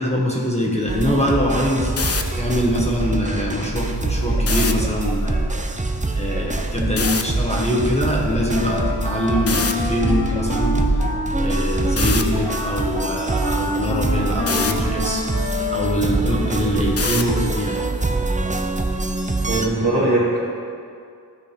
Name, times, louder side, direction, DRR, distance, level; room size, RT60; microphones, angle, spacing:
voice 1, 0.0-5.7 6.1-10.8 11.4-15.2 15.7-17.8, equal, 15° left, -4 dB, 1.3 m, -23 dB
sound 1, 0.9-19.7, right 2 dB, 20° right, 0.5 m, -24 dB
sound 2, 1.8-2.2 4.4-4.7 7.0-7.2 9.5-9.7 12.0-12.2 14.5-14.7 17.0-17.3, left 5 dB, 40° left, 0.5 m, -24 dB
Wind instrument woodwind instrument, 8.5-16.1, left 2 dB, 65° left, 1.0 m, -28 dB
voice 2, 19.4-20.4, right 2 dB, 75° right, -11 dB, 1.9 m, -20 dB
13.0 x 5.0 x 3.4 m, 2.3 s
wide cardioid pair, 40°, 39 cm